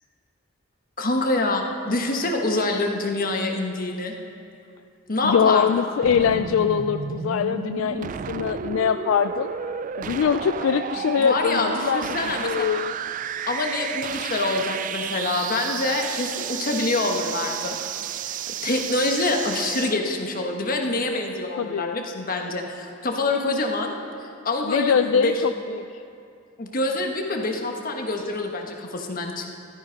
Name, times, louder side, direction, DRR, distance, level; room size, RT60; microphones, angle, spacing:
voice 1, 1.0-4.1 5.1-5.9 11.2-12.7 13.5-17.8 18.3-23.9 24.4-25.3 26.6-29.5, left 2 dB, 45° left, 2 dB, 1.4 m, -26 dB
voice 2, 5.2-9.5 10.0-12.9 21.6-22.0 24.6-25.9, left 7 dB, 85° left, 10 dB, 0.3 m, -23 dB
sound 1, 6.0-20.0, right 8 dB, 40° right, 0.3 m, -32 dB
14.0 x 12.5 x 5.2 m, 2.5 s
head